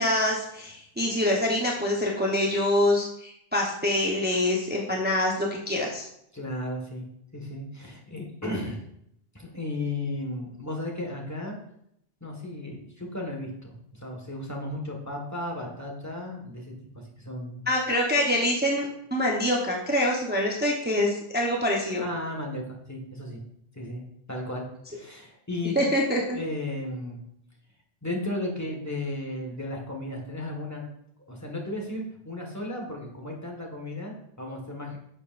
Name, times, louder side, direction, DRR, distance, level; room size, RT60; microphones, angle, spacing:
voice 1, 0.0-6.0 17.7-22.0 25.7-26.4, left 1 dB, 10° right, -2 dB, 0.9 m, -25 dB
voice 2, 6.3-7.0 7.3-8.8 9.3-11.5 12.2-17.7 22.0-23.4 23.7-24.0 24.3-25.8 26.3-27.2 28.0-30.8 31.3-35.0, left 1 dB, 15° left, 0 dB, 1.6 m, -34 dB
11.0 x 6.6 x 2.6 m, 0.74 s
omnidirectional pair, 1.0 m